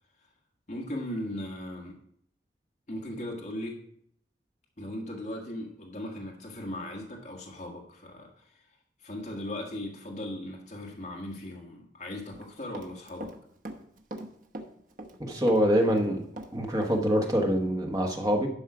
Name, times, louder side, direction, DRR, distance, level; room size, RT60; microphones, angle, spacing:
voice 1, 0.7-2.0 2.9-3.8 4.8-8.6 9.0-13.3, left 1 dB, 45° left, -1 dB, 1.6 m, -38 dB
Run, 12.3-13.4 13.6-15.2 15.5-17.0 17.3-17.4, right 1 dB, 50° right, 0.9 m, -41 dB
voice 2, 15.2-16.2 16.5-18.5, equal, 20° right, 2 dB, 1.2 m, -25 dB
11.5 x 5.4 x 4.8 m, 0.69 s
head